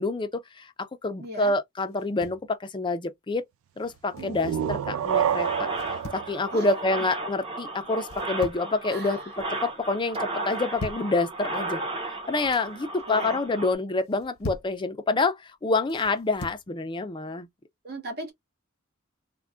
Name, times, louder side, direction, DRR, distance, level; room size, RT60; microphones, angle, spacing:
voice 1, 0.0-3.5 3.8-5.7 6.1-11.8 12.3-17.5, left 3 dB, 25° left, 0.5 m, -27 dB
voice 2, 1.2-1.5 6.5-6.7 8.9-9.2 13.1-13.4 17.8-18.3, right 1 dB, 50° right, 1.2 m, -37 dB
sound 1, 1.9-2.5 3.8-4.4 5.7-6.3 8.0-8.8 9.1-9.6 10.5-11.1 12.2-12.7 14.0-14.8 15.9-16.7, left 1 dB, 85° left, 0.9 m, -41 dB
sound 2, 4.1-7.7, right 9 dB, 80° right, 0.3 m, -29 dB
sound 3, 5.1-13.7, right 2 dB, 25° right, 1.0 m, -34 dB
3.3 x 2.2 x 2.4 m
head